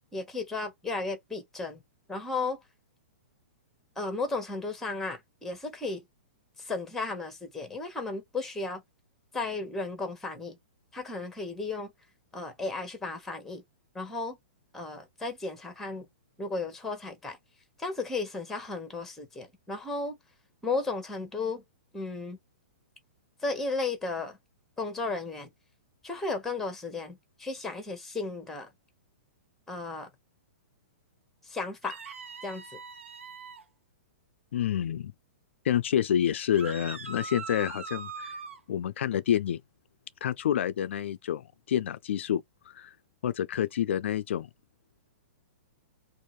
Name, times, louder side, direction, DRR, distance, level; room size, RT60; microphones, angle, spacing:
voice 1, 0.1-1.8 2.1-2.6 4.0-6.0 6.6-8.8 9.3-10.6 10.9-11.9 12.3-13.6 13.9-14.4 14.7-16.1 16.4-17.4 17.8-20.2 20.6-21.6 21.9-22.4 23.4-24.4 24.8-25.5 26.0-28.7 29.7-30.1 31.4-32.0 32.4-32.8, left 3 dB, 5° left, 1.1 m, -34 dB
sound 1, 31.8-33.6 36.5-38.6, right 4 dB, 90° right, 0.9 m, -41 dB
voice 2, 34.5-35.1 35.6-38.4 38.7-39.6 40.2-42.9 43.2-44.5, left 10 dB, 70° left, 0.4 m, -28 dB
2.7 x 2.5 x 3.1 m
hypercardioid pair, 145°, 7 cm